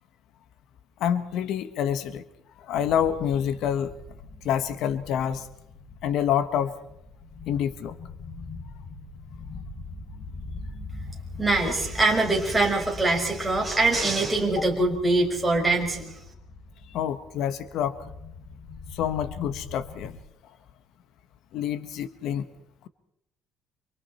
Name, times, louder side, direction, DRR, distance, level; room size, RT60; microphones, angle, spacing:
voice 1, 1.0-2.2 2.6-4.0 4.4-5.5 6.0-6.7 7.5-7.9 16.9-17.9 18.9-20.2 21.5-22.5, left 9 dB, 70° left, 12 dB, 1.4 m, -27 dB
sound 1, 2.7-20.1, left 3 dB, 45° left, 6.6 m, -42 dB
voice 2, 11.4-16.1, right 2 dB, 5° right, -1 dB, 5.9 m, -23 dB
29.5 x 25.5 x 4.4 m, 0.80 s
cardioid pair, 125°, 0 cm